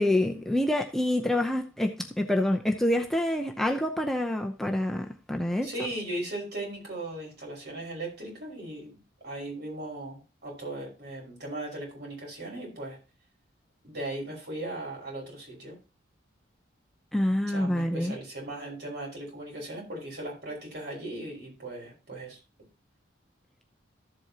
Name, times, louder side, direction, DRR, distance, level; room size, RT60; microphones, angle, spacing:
voice 1, 0.0-5.7 17.1-18.1, left 1 dB, ahead, 0.7 m, -27 dB
voice 2, 5.6-8.9 9.2-13.0 13.8-15.8 17.5-22.4, right 1 dB, 55° right, 5.5 m, -38 dB
14.0 x 7.8 x 2.9 m
head